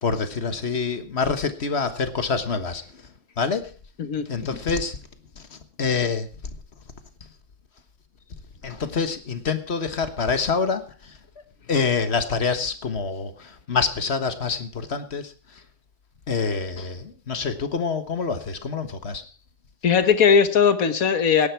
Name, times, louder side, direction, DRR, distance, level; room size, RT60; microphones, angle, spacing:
voice 1, 0.0-3.1 3.4-3.7 4.3-5.0 5.4-6.3 8.6-11.2 11.7-15.6 16.3-19.3, left 5 dB, 45° left, 10 dB, 1.6 m, -26 dB
voice 2, 19.8-21.5, left 6 dB, 65° left, 10 dB, 1.7 m, -18 dB
17.5 x 10.5 x 4.5 m, 0.40 s
omnidirectional pair, 1.6 m